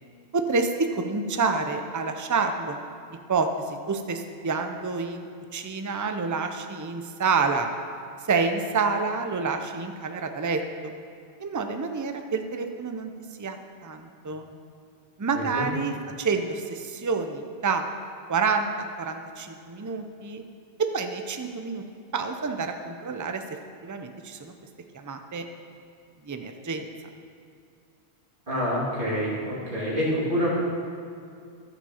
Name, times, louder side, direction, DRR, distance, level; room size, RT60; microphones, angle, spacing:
voice 1, 0.3-2.8 3.3-5.3 5.5-7.7 8.3-10.9 11.4-13.1 13.4-13.6 13.8-14.5 15.2-17.9 18.3-20.4 20.8-21.8 22.1-23.4 23.8-24.5 24.9-25.5 26.3-26.9, right 4 dB, 20° right, 6 dB, 0.5 m, -28 dB
voice 2, 15.3-15.7 28.5-30.5, equal, 50° right, -6 dB, 2.9 m, -27 dB
14.0 x 6.1 x 7.1 m, 2.3 s
omnidirectional pair, 1.1 m